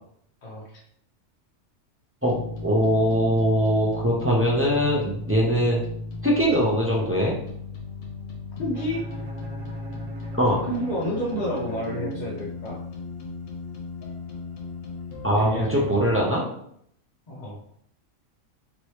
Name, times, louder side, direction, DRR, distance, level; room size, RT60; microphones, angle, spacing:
sound 1, 2.3-16.2, left 3 dB, 70° left, 1.1 m, -36 dB
voice 1, 2.6-5.8 6.2-7.4 10.4-10.6 15.2-16.4, equal, 20° right, -4 dB, 0.4 m, -22 dB
voice 2, 8.6-9.0 10.7-12.8 15.3-15.8 17.3-17.6, equal, 45° left, -5 dB, 0.6 m, -30 dB
Bowed string instrument, 8.7-12.8, right 3 dB, 65° right, 1.0 m, -42 dB
3.0 x 3.0 x 3.1 m, 0.67 s
omnidirectional pair, 1.4 m